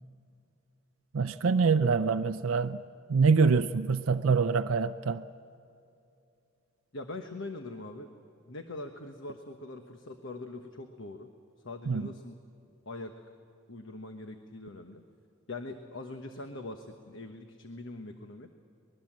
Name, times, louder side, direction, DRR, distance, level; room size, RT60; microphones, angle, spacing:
voice 1, 1.1-2.8 3.1-5.3 11.9-12.0, right 5 dB, 75° right, 10 dB, 0.5 m, -25 dB
voice 2, 6.9-8.1 8.5-11.3 11.6-12.4 12.8-13.1 13.7-15.0 15.5-18.5, left 2 dB, 60° left, 6 dB, 1.2 m, -42 dB
24.5 x 21.0 x 7.5 m, 2.6 s
head